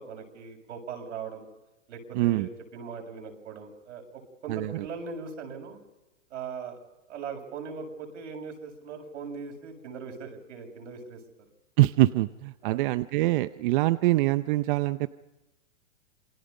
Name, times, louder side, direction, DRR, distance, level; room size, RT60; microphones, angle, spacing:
voice 1, 0.0-1.5 1.9-5.8 6.3-6.8 7.1-11.2 12.6-12.8, right 5 dB, 70° right, 3 dB, 7.3 m, -40 dB
voice 2, 2.1-2.5 4.5-4.9 11.8-15.1, right 17 dB, 40° right, 13 dB, 0.7 m, -24 dB
28.0 x 22.0 x 5.4 m, 1.0 s
hypercardioid pair, 135°, 38 cm